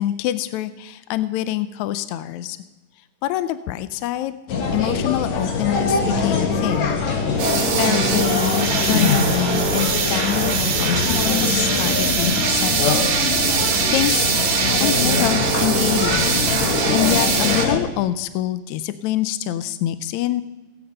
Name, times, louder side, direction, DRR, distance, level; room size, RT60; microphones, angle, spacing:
voice 1, 0.0-2.6 3.2-4.3 4.7-7.0 7.3-14.4 14.8-16.4 16.9-20.4, left 13 dB, 80° left, 13 dB, 1.7 m, -25 dB
sound 1, 4.5-17.8, left 4 dB, 60° left, 2.7 m, -23 dB
sound 2, 7.4-17.7, right 6 dB, 80° right, 3.4 m, -22 dB
18.0 x 8.7 x 5.5 m, 1.1 s
omnidirectional pair, 3.7 m